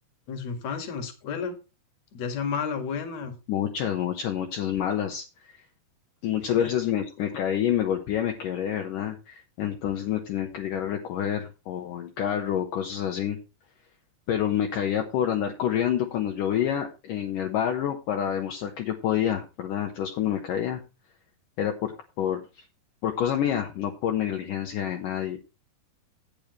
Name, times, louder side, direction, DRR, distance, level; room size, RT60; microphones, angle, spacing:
voice 1, 0.3-1.5 2.1-3.3 6.5-6.7, left 6 dB, 50° left, 7 dB, 2.6 m, -32 dB
voice 2, 3.5-5.6 6.2-13.4 14.3-20.8 21.6-22.7 23.0-25.4, left 10 dB, 70° left, 3 dB, 2.5 m, -28 dB
12.0 x 9.0 x 3.1 m, 0.29 s
omnidirectional pair, 4.5 m